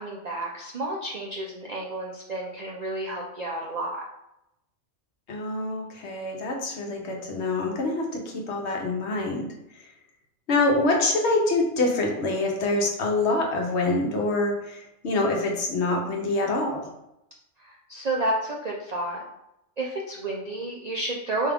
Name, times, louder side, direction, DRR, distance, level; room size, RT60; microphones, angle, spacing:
voice 1, 0.0-4.0 17.6-19.2 19.8-21.5, right 2 dB, 60° right, -2 dB, 0.4 m, -31 dB
voice 2, 5.3-9.9 10.5-16.9, left 2 dB, 65° left, 1 dB, 1.0 m, -26 dB
4.6 x 2.3 x 3.4 m, 0.86 s
omnidirectional pair, 1.3 m